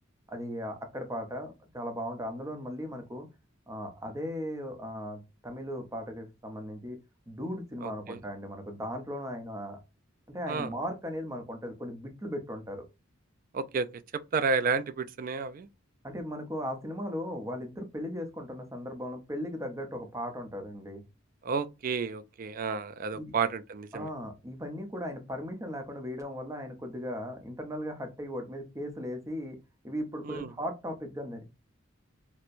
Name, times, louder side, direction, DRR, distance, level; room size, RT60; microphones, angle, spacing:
voice 1, 0.3-3.3 3.7-7.0 7.3-9.8 10.3-12.8 16.0-21.0 23.1-23.3 23.9-29.6 29.8-31.5, equal, 15° right, 0.7 m, -37 dB
voice 2, 7.8-8.2 10.5-10.7 13.5-13.9 14.3-15.7 21.4-24.1 30.2-30.5, right 5 dB, 45° right, 0.3 m, -31 dB
4.3 x 2.1 x 2.5 m
head